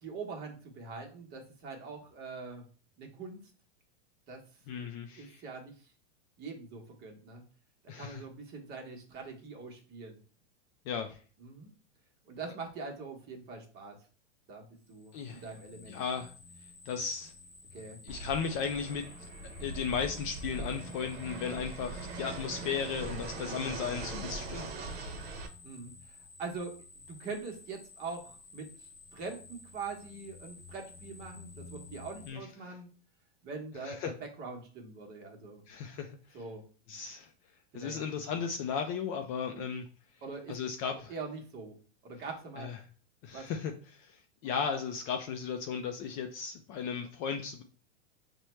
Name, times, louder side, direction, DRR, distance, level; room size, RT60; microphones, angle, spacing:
voice 1, 0.0-2.6 3.0-3.4 4.3-4.4 4.8-4.9 5.2-5.7 6.4-7.4 8.0-10.2 11.4-11.7 12.2-13.9 14.5-16.0 17.7-18.0 25.6-25.9 26.4-26.8 27.1-28.7 29.1-32.9 33.4-35.6 36.3-36.6 37.7-38.0 39.5-39.7 40.2-40.6 41.1-41.7 42.0-42.7 43.3-43.5, right 4 dB, 30° right, 2 dB, 1.0 m, -43 dB
voice 2, 4.7-5.4 7.9-8.2 10.9-11.2 15.1-15.4 15.9-16.3 16.9-17.3 18.0-19.1 19.6-24.7 32.3-32.7 33.8-34.1 35.7-36.4 36.9-37.3 37.7-39.9 40.5-41.1 42.6-42.8 43.2-44.2 44.4-47.6, left 6 dB, 35° left, 5 dB, 0.4 m, -35 dB
sound 1, 14.9-32.3, left 3 dB, ahead, 1.0 m, -51 dB
Fixed-wing aircraft airplane, 18.1-25.5, right 3 dB, 65° right, 0.8 m, -41 dB
5.5 x 2.2 x 3.1 m, 0.39 s
supercardioid pair, 140°, 32 cm